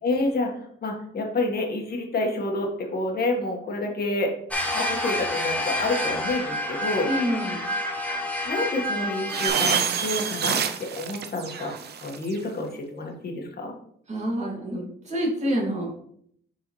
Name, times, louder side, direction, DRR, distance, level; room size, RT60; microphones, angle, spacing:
voice 1, 0.0-4.3 4.7-7.1 8.1-8.2 8.4-11.7 12.0-13.7, left 2 dB, 50° left, 1 dB, 1.8 m, -28 dB
sound 1, 4.5-9.5, left 1 dB, 5° left, 1.5 m, -28 dB
voice 2, 7.1-7.7 14.1-16.0, equal, 35° right, -2 dB, 2.5 m, -27 dB
sound 2, 9.3-12.3, right 7 dB, 55° right, 0.7 m, -27 dB
6.8 x 4.7 x 3.3 m, 0.66 s
cardioid pair, 90°, 20 cm